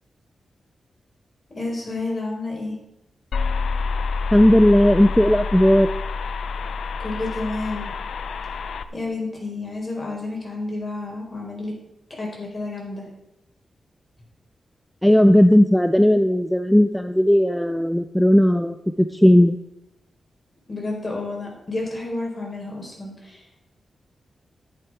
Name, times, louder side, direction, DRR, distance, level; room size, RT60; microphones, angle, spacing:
voice 1, 1.5-2.8 7.0-7.9 8.9-11.7 12.1-13.1 20.7-23.4, left 2 dB, 40° left, -1 dB, 4.2 m, -30 dB
sound 1, 3.3-8.8, left 4 dB, 80° left, 0.5 m, -28 dB
voice 2, 4.3-5.9 15.0-19.6, equal, 5° left, 9 dB, 0.4 m, -16 dB
11.0 x 8.7 x 4.6 m, 0.85 s
wide cardioid pair, 110°, 0 cm